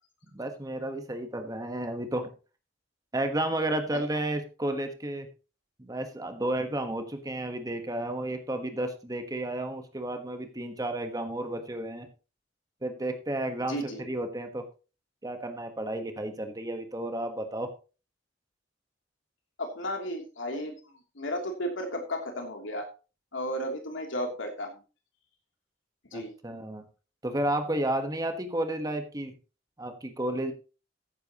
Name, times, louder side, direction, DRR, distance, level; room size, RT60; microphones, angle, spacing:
voice 1, 0.2-2.3 3.1-5.3 5.8-12.1 12.8-14.6 15.2-17.7 26.1-26.8 27.2-29.3 29.8-30.5, right 1 dB, 20° right, 6 dB, 1.3 m, -32 dB
voice 2, 13.7-14.0 19.6-22.8 23.3-24.8 26.1-26.3, equal, 75° left, 2 dB, 3.0 m, -34 dB
14.0 x 10.5 x 3.0 m, 0.34 s
head